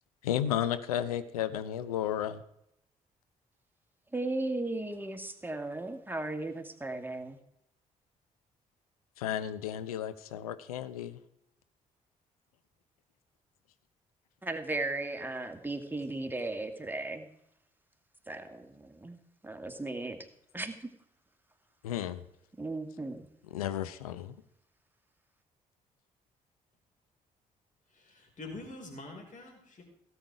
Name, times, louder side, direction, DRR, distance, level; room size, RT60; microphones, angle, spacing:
voice 1, 0.2-2.4 9.2-11.2 21.8-22.2 23.5-24.4, left 10 dB, 80° left, 12 dB, 0.8 m, -33 dB
voice 2, 4.1-7.4 14.4-17.3 18.3-19.2 19.4-20.2 20.5-20.9 22.6-23.3, right 2 dB, 10° right, 5 dB, 2.1 m, -36 dB
voice 3, 28.0-29.8, left 2 dB, 45° left, 2 dB, 4.9 m, -45 dB
17.0 x 8.1 x 4.8 m, 0.76 s
figure-of-eight pair, 40°, 19 cm